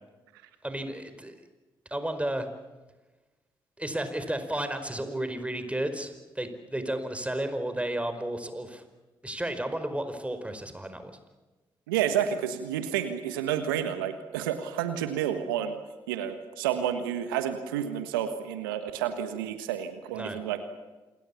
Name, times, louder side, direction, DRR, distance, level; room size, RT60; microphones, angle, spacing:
voice 1, 0.6-1.3 1.9-2.5 3.8-8.8 9.2-11.2 20.1-20.4, right 1 dB, 10° right, 9 dB, 4.8 m, -32 dB
voice 2, 11.9-15.8 16.1-20.6, right 9 dB, 85° right, 9 dB, 1.4 m, -30 dB
27.5 x 22.0 x 7.1 m, 1.2 s
hypercardioid pair, 40°, 11 cm